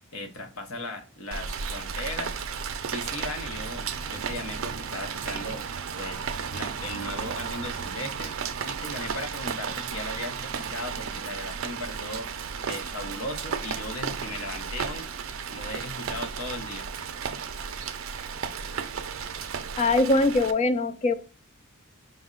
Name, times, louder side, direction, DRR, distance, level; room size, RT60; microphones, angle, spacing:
voice 1, 0.1-2.4 2.9-5.7 6.0-6.2 6.5-8.3 8.6-12.3 12.7-15.1 15.5-16.9, left 1 dB, 70° left, 0.7 m, -37 dB
Rain, 1.3-20.5, right 6 dB, 65° right, 0.4 m, -34 dB
voice 2, 19.8-21.1, left 2 dB, 30° left, 0.4 m, -22 dB
5.2 x 2.1 x 3.6 m
head